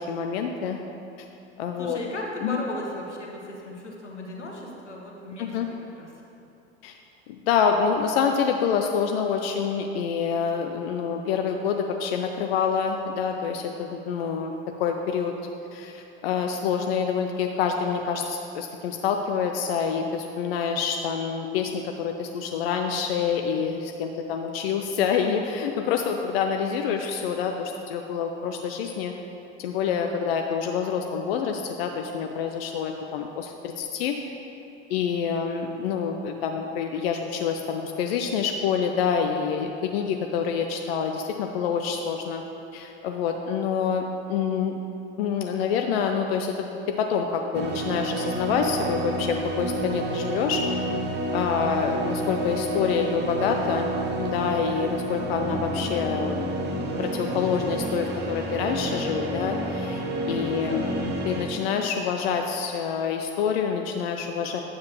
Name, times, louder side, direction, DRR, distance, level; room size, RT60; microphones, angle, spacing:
voice 1, 0.1-0.8 1.6-2.0 2.4-2.6 5.4-5.7 6.8-7.0 7.3-15.3 15.7-29.1 29.6-34.2 34.9-42.4 42.7-44.8 45.2-50.8 51.3-53.9 54.2-56.5 57.0-64.6, left 6 dB, 60° left, 4 dB, 0.5 m, -27 dB
voice 2, 1.8-5.6 6.0-6.1 60.2-61.1, left 1 dB, 85° left, -1 dB, 1.1 m, -36 dB
sound 1, 47.5-61.4, right 1 dB, 30° right, 1.0 m, -29 dB
9.4 x 7.5 x 2.9 m, 2.8 s
figure-of-eight pair, 70°, 34 cm